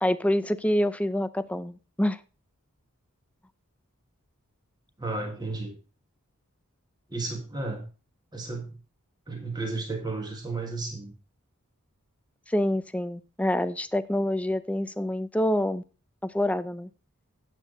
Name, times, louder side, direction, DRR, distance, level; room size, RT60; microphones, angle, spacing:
voice 1, 0.0-2.2 12.5-15.8 16.2-16.9, left 1 dB, 5° left, 12 dB, 0.5 m, -26 dB
voice 2, 5.0-5.8 7.1-7.8 8.3-8.8 9.3-11.1, right 3 dB, 20° right, 2 dB, 1.7 m, -33 dB
9.6 x 8.4 x 3.9 m, 0.33 s
head